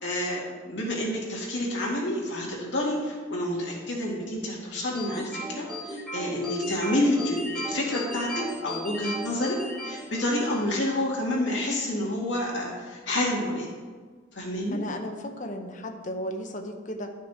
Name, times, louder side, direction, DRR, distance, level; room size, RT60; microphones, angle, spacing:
voice 1, 0.0-9.6 9.8-13.7 14.3-14.8, left 1 dB, 65° left, -3 dB, 2.3 m, -29 dB
sound 1, 5.0-10.7, equal, ahead, 2.4 m, -36 dB
voice 2, 14.7-17.1, left 1 dB, 40° left, 5 dB, 0.8 m, -35 dB
11.0 x 6.1 x 4.4 m, 1.5 s
head